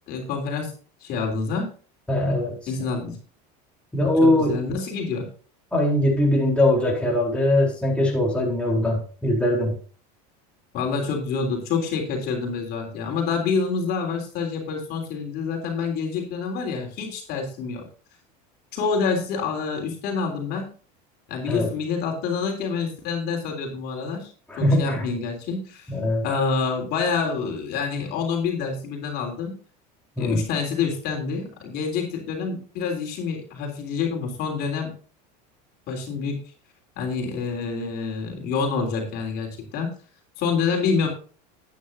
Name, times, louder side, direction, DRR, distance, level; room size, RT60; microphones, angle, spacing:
voice 1, 0.1-0.7 1.0-1.7 2.7-3.2 4.2-5.3 10.7-17.8 18.7-20.7 21.3-24.3 24.6-25.9 26.2-29.5 30.2-34.9 35.9-36.4 37.0-39.9 40.4-41.1, left 5 dB, 50° left, 1 dB, 3.5 m, -27 dB
voice 2, 2.1-2.6 3.9-4.6 5.7-9.7 21.5-21.7 24.5-25.0 25.9-26.2 30.2-30.4, left 1 dB, 5° left, -3 dB, 3.9 m, -21 dB
12.5 x 9.6 x 2.8 m, 0.40 s
supercardioid pair, 125°, 20 cm